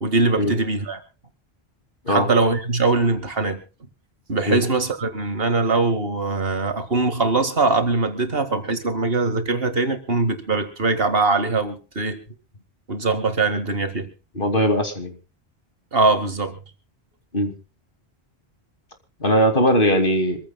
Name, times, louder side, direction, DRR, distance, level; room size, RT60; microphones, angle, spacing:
voice 1, 0.0-1.0 2.1-3.6 4.3-12.2 12.9-14.1 15.9-16.5, right 3 dB, 70° right, 8 dB, 2.2 m, -22 dB
voice 2, 14.3-15.1 17.3-17.5 19.2-20.4, equal, 55° left, 6 dB, 2.9 m, -19 dB
25.5 x 15.0 x 2.4 m, 0.33 s
omnidirectional pair, 1.0 m